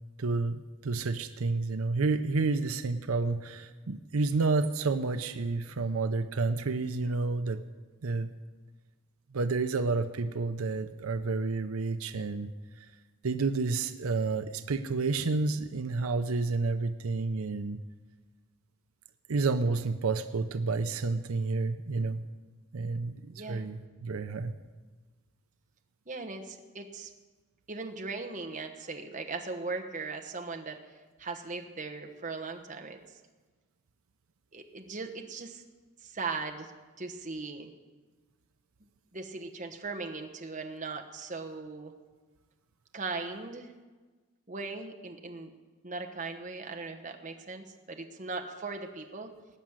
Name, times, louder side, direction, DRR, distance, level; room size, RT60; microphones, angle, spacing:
voice 1, 0.2-7.6 8.0-8.3 9.3-12.9 13.2-17.8 19.3-22.2 22.7-24.5, right 3 dB, 85° right, 9 dB, 0.6 m, -30 dB
voice 2, 23.3-23.6 26.1-27.1 27.7-30.8 31.2-33.0 34.5-35.6 36.0-36.7 37.0-37.7 39.1-41.9 42.9-43.7 44.5-45.5 45.8-49.3, right 3 dB, 35° right, 3 dB, 1.1 m, -38 dB
19.0 x 6.3 x 8.9 m, 1.3 s
head